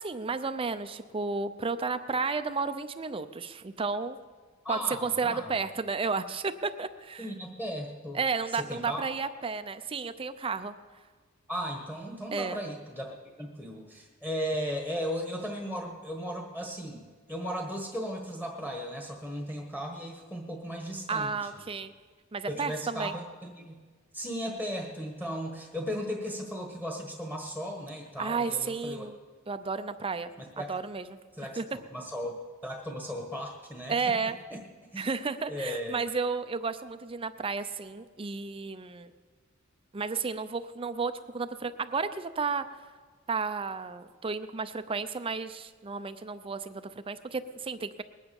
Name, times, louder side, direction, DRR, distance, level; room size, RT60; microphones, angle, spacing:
voice 1, 0.0-4.2 4.7-7.3 8.1-10.7 12.3-12.6 21.1-21.9 22.3-23.1 28.2-29.2 29.5-30.3 30.7-31.2 31.6-31.7 33.9-34.4 35.0-39.1 39.9-42.7 43.3-48.0, right 4 dB, 25° right, 11 dB, 0.5 m, -32 dB
voice 2, 4.6-5.5 7.2-8.2 8.5-9.1 11.5-21.3 22.5-23.7 24.1-29.1 30.4-30.7 31.4-34.6 34.9-35.0 35.5-36.0, equal, 10° left, 1 dB, 1.4 m, -36 dB
20.0 x 9.6 x 7.0 m, 1.5 s
head